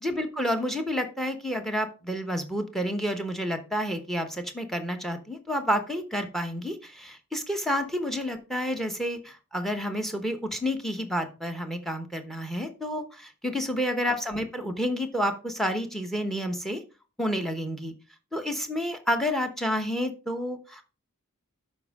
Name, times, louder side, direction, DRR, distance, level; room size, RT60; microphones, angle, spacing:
voice 1, 0.0-16.8 17.2-17.9 18.3-20.8, equal, ahead, 7 dB, 1.0 m, -30 dB
12.5 x 5.2 x 3.6 m, 0.32 s
head